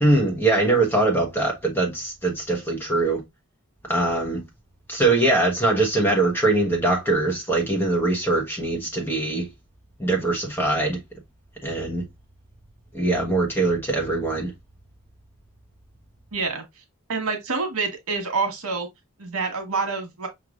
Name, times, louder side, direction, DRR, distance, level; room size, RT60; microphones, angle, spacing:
voice 1, 0.0-3.2 3.9-4.4 4.9-9.5 10.0-11.0 11.6-12.0 12.9-14.5, right 2 dB, 10° left, 1.1 m, -22 dB
voice 2, 16.3-16.6 17.1-18.9 19.2-20.3, right 4 dB, 90° right, 1.3 m, -27 dB
5.7 x 3.2 x 2.4 m
head